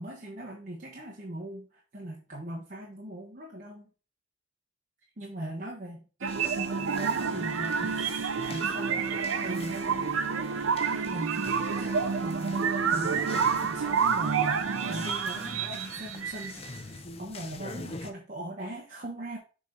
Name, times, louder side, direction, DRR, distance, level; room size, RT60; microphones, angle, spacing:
voice 1, 0.0-3.9 5.2-9.1 9.4-10.2 10.5-19.4, right 1 dB, 40° right, -2 dB, 1.1 m, -40 dB
sound 1, 6.2-18.1, left 3 dB, 30° left, 0.7 m, -45 dB
sound 2, 6.2-16.8, right 6 dB, 85° right, 0.6 m, -29 dB
7.3 x 3.5 x 3.9 m, 0.35 s
head